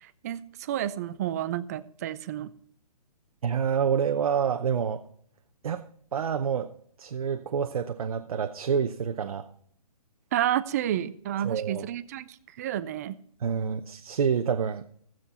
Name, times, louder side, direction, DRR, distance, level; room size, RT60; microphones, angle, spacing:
voice 1, 0.0-2.5 10.3-13.2, right 11 dB, 25° right, 14 dB, 0.4 m, -30 dB
voice 2, 3.4-5.0 5.6-5.9 6.1-6.7 7.0-9.5 11.4-11.9 13.4-14.8, right 7 dB, 65° right, 6 dB, 0.7 m, -27 dB
15.0 x 7.5 x 4.2 m, 0.62 s
hypercardioid pair, 150°, 20 cm